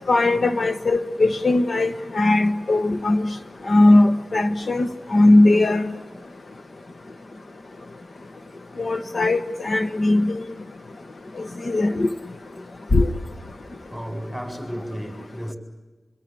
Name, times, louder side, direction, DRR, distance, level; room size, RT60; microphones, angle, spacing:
voice 1, 0.1-3.3 3.7-5.9 8.8-10.4 11.4-12.1 12.9-13.1, left 2 dB, 55° left, 1.2 m, -19 dB
voice 2, 13.9-15.6, equal, ahead, 7.4 m, -33 dB
27.5 x 22.0 x 9.7 m
cardioid pair, 50°, 0 cm